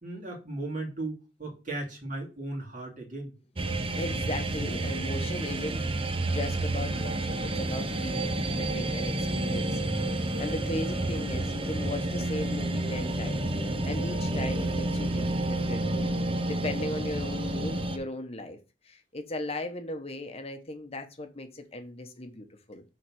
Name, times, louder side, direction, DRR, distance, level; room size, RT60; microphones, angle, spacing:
voice 1, 0.0-3.3, right 2 dB, 45° right, 2.5 m, -36 dB
sound 1, 3.6-18.0, right 1 dB, 30° right, 0.8 m, -30 dB
voice 2, 3.7-16.1 16.5-18.6 18.8-22.8, left 2 dB, 35° left, 1.0 m, -38 dB
6.2 x 3.9 x 6.2 m
head